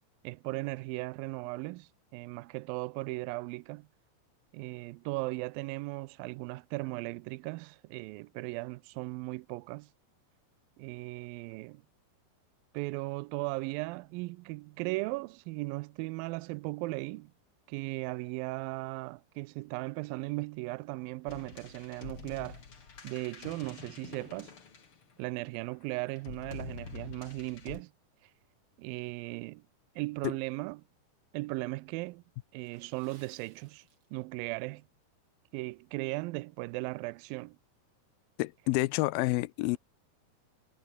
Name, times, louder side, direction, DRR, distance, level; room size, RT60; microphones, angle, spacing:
voice 1, 0.2-3.9 4.5-9.9 10.8-11.8 12.7-17.3 17.7-22.6 23.0-24.5 25.2-27.9 28.8-29.6 30.0-30.8 31.3-32.2 32.5-33.8 34.1-34.8 35.5-37.6, right 23 dB, 90° right, 2.0 m, -37 dB
sound 1, 21.3-25.3 26.2-27.8, left 5 dB, 35° left, 3.4 m, -47 dB
Water / Splash splatter, 32.6-34.5 34.8-35.0 35.6-35.8 36.3-36.4, right 5 dB, 30° right, 2.9 m, -64 dB
voice 2, 38.4-39.8, left 20 dB, 80° left, 2.2 m, -29 dB
omnidirectional pair, 4.7 m